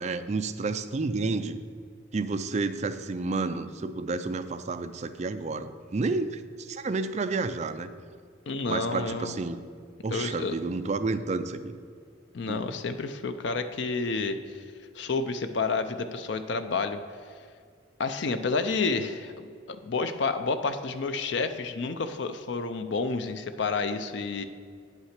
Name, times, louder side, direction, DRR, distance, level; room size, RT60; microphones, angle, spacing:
voice 1, 0.0-1.6 2.1-7.9 8.7-9.6 10.0-11.8 12.5-12.6, right 3 dB, 35° right, 10 dB, 0.4 m, -30 dB
voice 2, 8.5-9.3 10.1-10.6 12.3-14.6 14.9-17.0 18.0-24.4, left 4 dB, 60° left, 9 dB, 0.5 m, -30 dB
8.8 x 5.7 x 5.8 m, 2.2 s
head